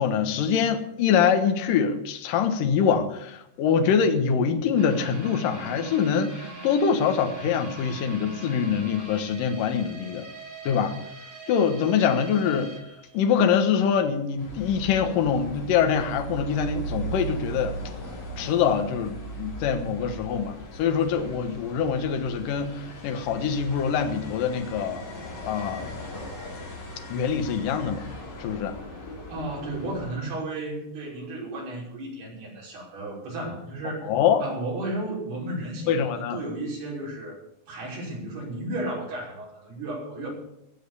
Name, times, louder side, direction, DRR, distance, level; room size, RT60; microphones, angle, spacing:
voice 1, 0.0-10.3 10.6-11.0 11.5-12.7 13.1-17.7 18.4-25.0 25.5-25.9 27.1-28.1 28.4-28.8 34.0-34.4 35.9-36.4, left 7 dB, 65° left, 6 dB, 2.7 m, -24 dB
sound 1, 4.8-13.8 14.1-14.2 14.7-14.8, right 3 dB, 35° right, 0.7 m, -42 dB
sound 2, 14.4-30.2, right 1 dB, 40° left, 4.4 m, -38 dB
voice 2, 29.3-34.1 34.4-37.4 37.7-40.3, right 2 dB, 75° right, -4 dB, 7.5 m, -33 dB
20.5 x 7.7 x 7.0 m, 0.82 s
omnidirectional pair, 4.6 m